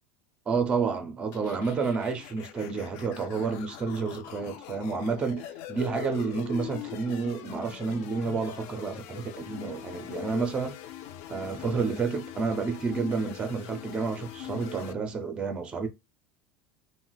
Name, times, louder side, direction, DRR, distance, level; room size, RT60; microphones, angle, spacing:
voice 1, 0.5-10.8 11.3-15.9, right 5 dB, 15° right, 0.4 m, -30 dB
sound 1, 1.3-14.9, left 12 dB, 55° left, 0.4 m, -42 dB
2.4 x 2.1 x 3.7 m
cardioid pair, 155°, 6 cm